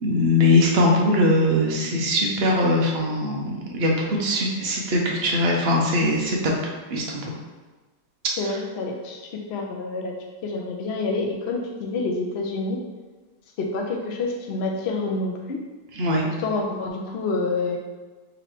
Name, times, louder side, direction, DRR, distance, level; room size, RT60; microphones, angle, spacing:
voice 1, 0.0-7.2 16.0-16.2, left 1 dB, 55° right, -1 dB, 0.7 m, -21 dB
voice 2, 8.4-10.1 10.4-12.8 13.6-15.6 16.4-17.8, left 3 dB, 80° left, 1 dB, 0.5 m, -28 dB
3.9 x 3.1 x 4.3 m, 1.3 s
omnidirectional pair, 2.0 m